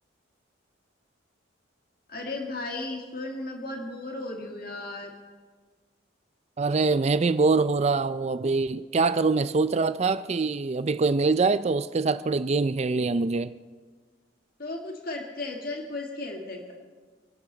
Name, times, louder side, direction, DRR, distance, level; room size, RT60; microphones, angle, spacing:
voice 1, 2.1-5.1 14.6-16.7, left 2 dB, 50° left, 1.8 m, -35 dB
voice 2, 6.6-13.5, right 4 dB, 35° right, 0.4 m, -24 dB
29.0 x 11.5 x 4.0 m
head